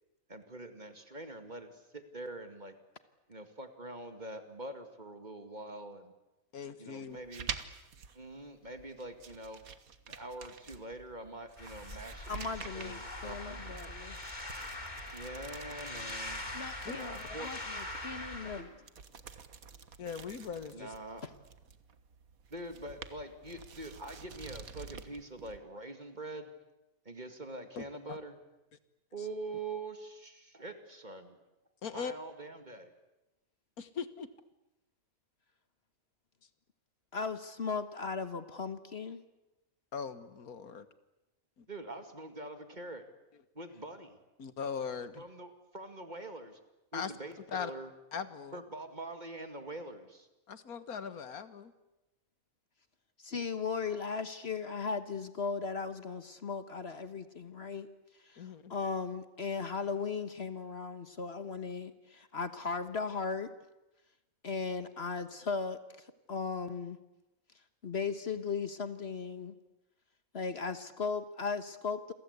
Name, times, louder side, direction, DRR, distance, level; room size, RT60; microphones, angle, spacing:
voice 1, 0.3-2.8 3.3-6.1 6.8-7.5 8.1-9.6 10.1-12.3 12.7-13.7 15.1-16.4 16.9-17.5 20.7-21.2 22.5-26.5 27.1-28.4 29.1-31.4 31.9-32.9 41.7-43.0 43.5-44.2 45.2-46.6 46.9-47.9 48.5-50.3, right 2 dB, 30° right, 7 dB, 2.4 m, -44 dB
voice 2, 6.5-7.2 16.9-17.0 20.0-20.9 27.8-28.2 29.2-29.3 31.8-32.1 33.8-34.3 39.9-40.9 41.6-41.7 44.4-45.2 46.9-47.1 47.5-47.7 48.1-48.6 50.5-51.7 58.4-58.7, left 6 dB, 85° left, 12 dB, 1.9 m, -40 dB
sound 1, 7.1-25.6, right 6 dB, 75° right, 1.8 m, -49 dB
sound 2, 11.6-18.6, left 1 dB, 30° left, 3.3 m, -42 dB
voice 3, 12.3-14.2 16.5-18.9 21.2-21.3 37.1-39.2 53.2-57.9 58.2-63.5 64.4-67.0 67.8-69.5 70.3-72.1, left 5 dB, 45° left, 10 dB, 1.5 m, -37 dB
29.0 x 23.0 x 8.2 m, 0.96 s
omnidirectional pair, 1.5 m